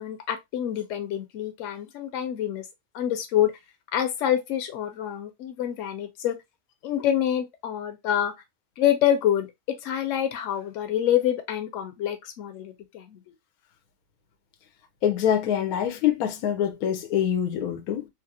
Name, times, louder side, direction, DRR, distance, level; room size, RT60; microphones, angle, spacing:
voice 1, 0.0-2.7 2.9-3.5 3.9-6.4 6.8-8.3 8.8-13.2, left 10 dB, 65° left, 1.0 m, -26 dB
voice 2, 15.0-18.1, left 9 dB, 90° left, 1.1 m, -25 dB
2.8 x 2.4 x 2.6 m
omnidirectional pair, 1.5 m